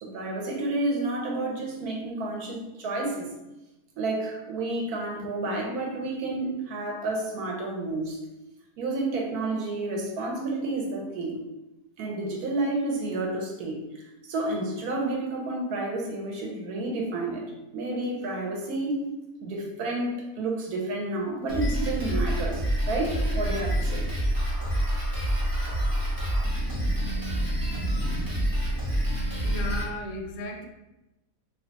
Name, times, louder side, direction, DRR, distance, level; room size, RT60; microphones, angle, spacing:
voice 1, 0.0-3.3 4.0-8.2 8.8-11.4 12.0-17.4 17.7-19.0 19.4-24.0, right 2 dB, 70° right, -1 dB, 1.2 m, -30 dB
Drum kit, 21.5-29.8, right 1 dB, 25° right, 0.5 m, -27 dB
voice 2, 29.4-30.7, left 2 dB, 65° left, 2 dB, 0.8 m, -35 dB
2.8 x 2.3 x 3.8 m, 0.96 s
omnidirectional pair, 1.7 m